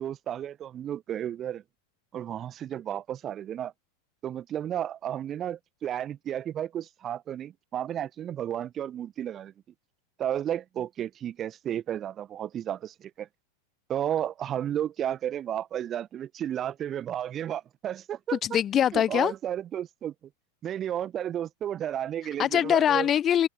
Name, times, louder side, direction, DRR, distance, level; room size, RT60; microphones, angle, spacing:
voice 1, 0.0-1.6 2.1-3.7 4.2-9.5 10.2-13.3 13.9-18.4 18.9-20.1 20.6-23.1, right 10 dB, 30° right, 1.5 m, -33 dB
voice 2, 18.4-19.3 22.4-23.5, left 10 dB, 25° left, 1.0 m, -23 dB
figure-of-eight pair, 90°, 0 cm